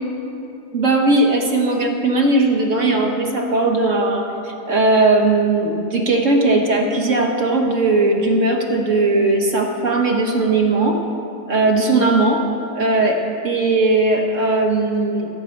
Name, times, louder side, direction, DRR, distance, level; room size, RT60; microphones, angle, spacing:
voice 1, 0.7-11.0 11.5-12.4 12.7-15.3, right 2 dB, 55° right, 2 dB, 1.4 m, -18 dB
14.0 x 5.7 x 8.4 m, 2.9 s
omnidirectional pair, 1.7 m